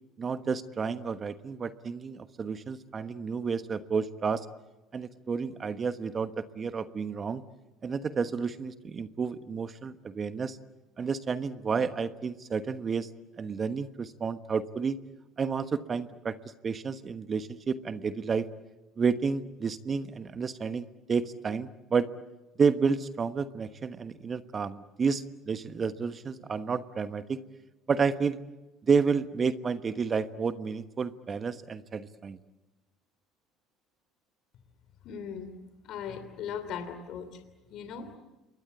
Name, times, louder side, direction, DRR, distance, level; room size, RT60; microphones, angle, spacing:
voice 1, 0.2-4.5 4.9-7.4 7.8-10.6 11.0-13.1 13.4-15.0 15.4-16.3 16.6-18.5 19.0-22.1 22.6-27.4 27.9-28.4 28.9-32.4, right 5 dB, 35° right, 11 dB, 1.2 m, -30 dB
voice 2, 35.0-35.5 35.9-37.3 37.7-38.1, left 7 dB, 60° left, 8 dB, 3.0 m, -38 dB
27.5 x 22.0 x 8.5 m, 1.1 s
hypercardioid pair, 70°, 0 cm